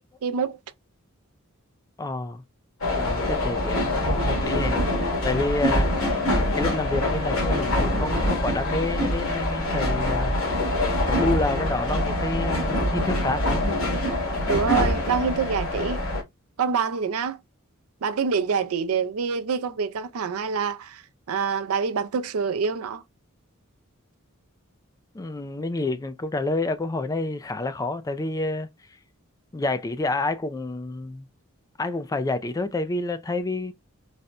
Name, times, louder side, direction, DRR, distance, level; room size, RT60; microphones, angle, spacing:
voice 1, 0.2-0.6 14.5-16.0 16.6-17.4 18.0-23.0, right 6 dB, 80° right, 0.5 m, -26 dB
voice 2, 2.0-2.4 2.9-5.9 6.5-10.4 11.1-13.7 25.1-28.7 29.5-31.3 31.8-33.7, left 2 dB, 15° left, 0.3 m, -29 dB
sound 1, 2.8-16.2, left 1 dB, 70° left, 1.9 m, -24 dB
4.1 x 2.1 x 2.4 m
head